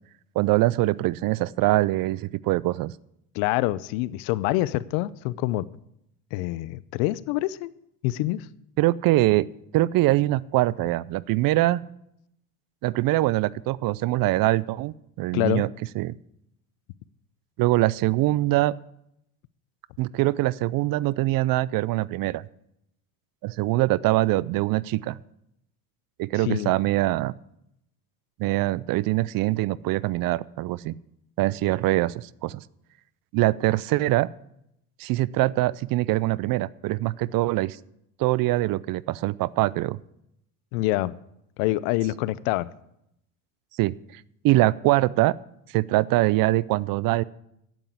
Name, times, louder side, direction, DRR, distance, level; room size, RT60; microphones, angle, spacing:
voice 1, 0.4-2.9 8.8-9.5 9.7-11.8 12.8-15.7 16.0-16.1 17.6-18.7 20.0-22.4 23.4-25.2 26.2-27.3 28.4-30.9 31.4-32.6 33.3-34.3 35.0-37.8 38.2-40.0 43.8-45.3 45.7-47.2, right 18 dB, 50° right, 21 dB, 0.5 m, -23 dB
voice 2, 3.3-5.7 6.3-7.7 8.0-8.5 15.3-15.6 26.5-26.7 40.7-41.1 41.6-42.7, left 17 dB, 75° left, 19 dB, 0.6 m, -26 dB
8.8 x 7.9 x 8.2 m, 0.78 s
supercardioid pair, 90°, 45 cm